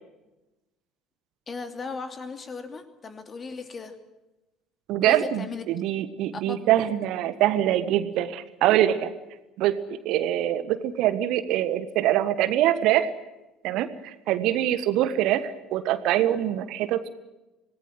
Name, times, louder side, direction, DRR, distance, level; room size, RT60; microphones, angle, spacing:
voice 1, 1.5-3.9 5.0-5.6 6.3-6.7, left 4 dB, 30° left, 7 dB, 2.9 m, -37 dB
voice 2, 4.9-9.1 9.6-13.1 13.6-17.1, right 12 dB, 55° right, 12 dB, 1.4 m, -24 dB
26.5 x 19.0 x 7.7 m, 1.0 s
figure-of-eight pair, 55°, 0 cm